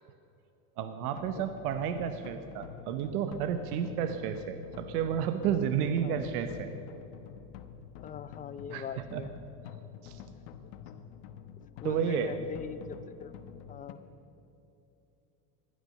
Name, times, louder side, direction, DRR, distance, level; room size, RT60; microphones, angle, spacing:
voice 1, 0.8-6.7 8.7-9.2 10.0-10.2 11.8-12.3, right 8 dB, 80° right, 8 dB, 1.1 m, -31 dB
sound 1, 1.2-13.9, left 9 dB, 60° left, 1.2 m, -48 dB
voice 2, 5.8-6.3 8.0-9.3 10.6-10.7 11.0-11.1 11.8-13.3 13.7-14.0, left 7 dB, 20° left, 13 dB, 0.4 m, -41 dB
16.0 x 12.0 x 6.5 m, 2.8 s
supercardioid pair, 125°, 45 cm